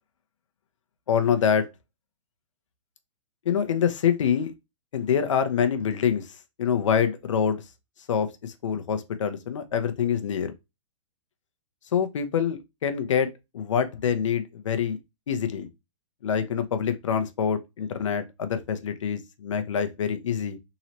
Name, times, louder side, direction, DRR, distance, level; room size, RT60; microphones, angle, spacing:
voice 1, 1.1-1.7 3.5-4.5 4.9-6.3 6.6-7.6 8.1-10.5 11.9-15.0 15.3-15.7 16.2-20.6, left 7 dB, 65° left, 0.8 m, -25 dB
3.9 x 3.0 x 2.9 m
hypercardioid pair, 175°, 17 cm